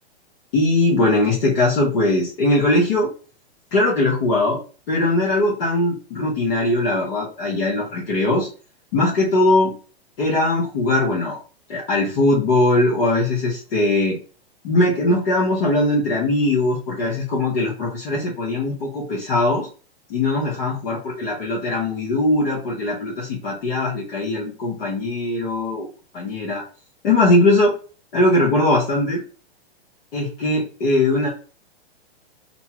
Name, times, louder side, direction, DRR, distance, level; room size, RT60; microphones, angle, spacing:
voice 1, 0.5-3.1 3.7-4.6 4.9-8.5 8.9-9.7 10.2-11.4 11.7-14.2 14.6-19.7 20.1-25.9 26.1-26.6 27.0-27.7 28.1-29.2 30.1-31.3, left 2 dB, 65° left, -6 dB, 1.2 m, -20 dB
2.9 x 2.3 x 2.8 m, 0.37 s
hypercardioid pair, 135°, 32 cm